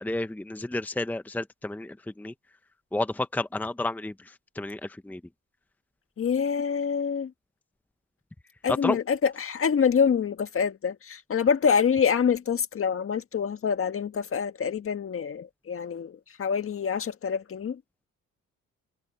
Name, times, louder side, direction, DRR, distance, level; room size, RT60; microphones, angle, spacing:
voice 1, 0.0-2.3 2.9-5.2 8.8-9.0, left 2 dB, 5° left, 0.8 m, -31 dB
voice 2, 6.2-7.3 8.6-17.8, left 6 dB, 45° left, 1.7 m, -26 dB
cardioid pair, 90°, 30 cm